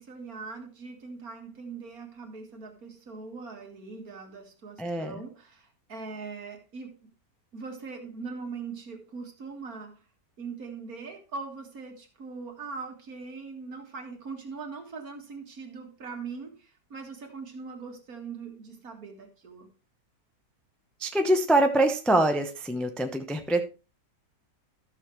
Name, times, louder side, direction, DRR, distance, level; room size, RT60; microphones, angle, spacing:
voice 1, 0.0-7.0 7.5-10.0 10.4-19.7, right 4 dB, 55° right, 2.3 m, -41 dB
voice 2, 4.8-5.1 21.0-23.7, right 1 dB, ahead, 0.4 m, -24 dB
13.5 x 6.7 x 3.1 m
omnidirectional pair, 1.8 m